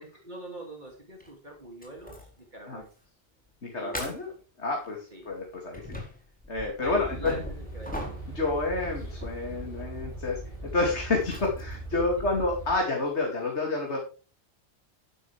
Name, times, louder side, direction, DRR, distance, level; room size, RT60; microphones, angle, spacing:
voice 1, 0.0-2.9 3.7-4.4 5.1-5.3 6.8-8.0 8.4-8.5, right 1 dB, 45° right, 0 dB, 2.7 m, -43 dB
sound 1, 1.2-1.3 1.8-2.4 2.8-3.0 3.4-3.5 3.9-4.4 5.2-13.3, equal, 5° left, 4.3 m, -43 dB
voice 2, 3.6-4.3 4.6-6.0 6.5-7.4 8.3-10.4 10.7-14.0, left 3 dB, 75° left, 0 dB, 2.9 m, -29 dB
sound 2, 6.8-12.7, right 1 dB, 55° left, 5.9 m, -40 dB
12.0 x 11.0 x 3.4 m, 0.36 s
omnidirectional pair, 1.2 m